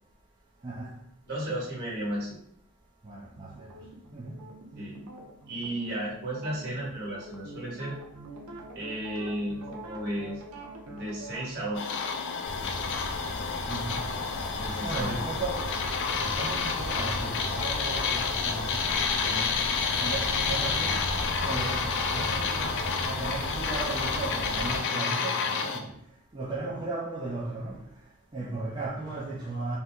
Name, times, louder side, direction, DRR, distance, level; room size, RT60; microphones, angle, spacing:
voice 1, 0.6-1.0 3.0-3.7 4.1-4.3 13.7-14.0 14.8-15.7 16.2-19.6 20.0-21.0 21.4-26.0 26.3-27.9 28.3-29.8, right 3 dB, 20° right, 0.4 m, -36 dB
voice 2, 1.3-2.4 4.8-5.1 5.5-7.9 8.7-10.4 10.9-11.9 14.5-15.1 20.6-20.7, right 1 dB, 45° right, 1.4 m, -34 dB
sound 1, 3.4-11.5, right 2 dB, 90° right, 0.6 m, -45 dB
sound 2, 11.7-25.8, left 5 dB, 55° left, 0.3 m, -30 dB
sound 3, 12.4-24.8, equal, 70° left, 1.1 m, -36 dB
2.8 x 2.0 x 3.5 m
head